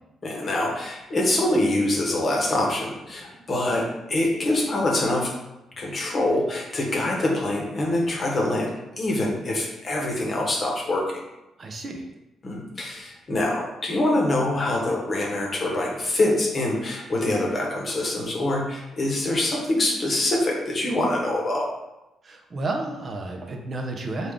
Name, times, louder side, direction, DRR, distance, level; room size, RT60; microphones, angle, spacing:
voice 1, 0.2-5.3 5.8-11.2 12.4-21.7, left 1 dB, 40° left, -1 dB, 0.9 m, -25 dB
voice 2, 11.6-12.1 22.2-24.3, right 2 dB, 40° right, 3 dB, 0.5 m, -31 dB
3.4 x 2.3 x 3.5 m, 0.96 s
cardioid pair, 90°, 0 cm